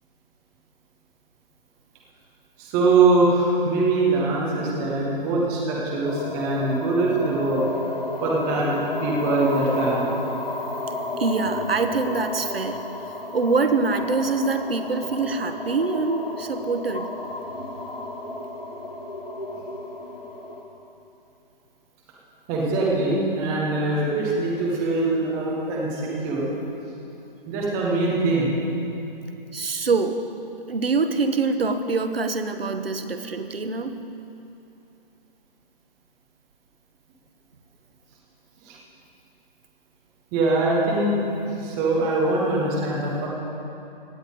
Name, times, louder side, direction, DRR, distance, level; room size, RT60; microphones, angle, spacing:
voice 1, 2.6-7.6 8.2-10.1 14.8-14.9 22.5-26.5 27.5-28.5 38.6-38.8 40.3-41.2 41.6-43.3, right 2 dB, 5° right, -4 dB, 0.4 m, -22 dB
sound 1, 6.0-20.6, left 2 dB, 85° left, 2.4 m, -32 dB
voice 2, 11.2-12.8 13.3-17.1 29.5-30.2 30.7-34.0, right 4 dB, 80° right, 8 dB, 1.1 m, -24 dB
16.5 x 9.2 x 5.1 m, 2.8 s
figure-of-eight pair, 145°, 29 cm